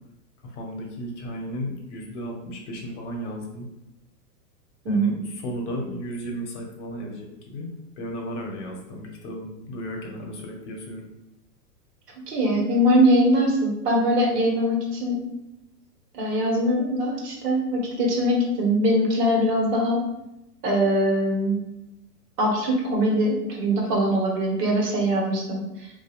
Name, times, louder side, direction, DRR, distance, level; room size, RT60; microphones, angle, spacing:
voice 1, 0.4-3.7 4.9-7.7 8.0-11.0, equal, 45° left, 1 dB, 0.8 m, -34 dB
voice 2, 12.3-15.2 16.1-20.0 20.6-21.6 22.4-25.9, equal, 70° right, -1 dB, 1.0 m, -22 dB
2.8 x 2.3 x 2.4 m, 0.89 s
hypercardioid pair, 125°, 49 cm